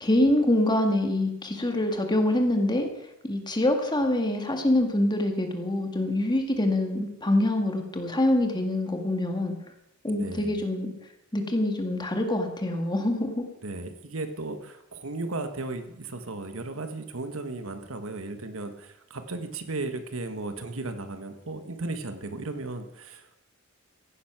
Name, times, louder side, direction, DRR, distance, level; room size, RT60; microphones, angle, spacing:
voice 1, 0.0-2.9 3.2-9.5 10.0-10.9 11.3-13.4, left 1 dB, 20° left, 4 dB, 2.0 m, -25 dB
voice 2, 10.1-10.6 13.6-23.3, right 2 dB, 75° right, 8 dB, 1.4 m, -35 dB
15.5 x 10.5 x 6.1 m, 0.85 s
head